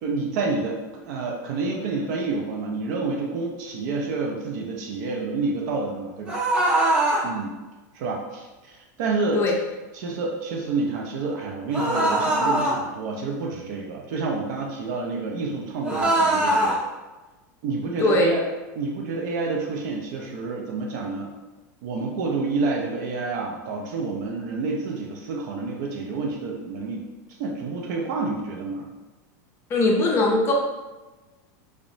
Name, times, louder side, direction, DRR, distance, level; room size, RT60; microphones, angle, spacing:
voice 1, 0.0-6.4 6.9-7.5 7.9-9.4 9.9-16.8 17.6-18.4 18.7-21.3 21.8-27.0 27.4-28.9, right 3 dB, 65° right, 0 dB, 0.5 m, -28 dB
sound 1, 6.2-7.2 11.7-12.7 15.8-16.7, right 1 dB, 20° right, 1.3 m, -21 dB
voice 2, 18.0-18.3 29.7-30.5, left 2 dB, 25° left, -1 dB, 0.5 m, -20 dB
2.9 x 2.1 x 2.6 m, 1.2 s
supercardioid pair, 135°, 10 cm